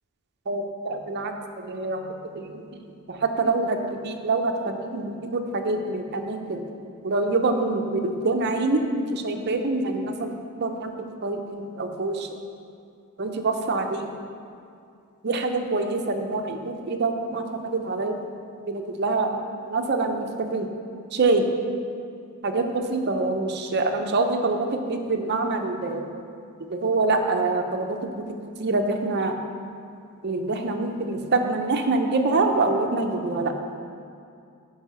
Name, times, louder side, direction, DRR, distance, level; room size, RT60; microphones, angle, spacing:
voice 1, 0.5-2.0 2.3-2.8 3.1-3.8 4.0-6.6 7.0-10.3 10.6-10.9 11.2-12.3 13.2-14.1 15.2-18.1 18.7-19.3 19.7-20.7 21.1-21.5 22.4-26.0 26.7-28.2 28.6-29.4 30.2-33.5, right 3 dB, 50° right, 4 dB, 0.7 m, -25 dB
9.6 x 4.8 x 5.6 m, 2.4 s
head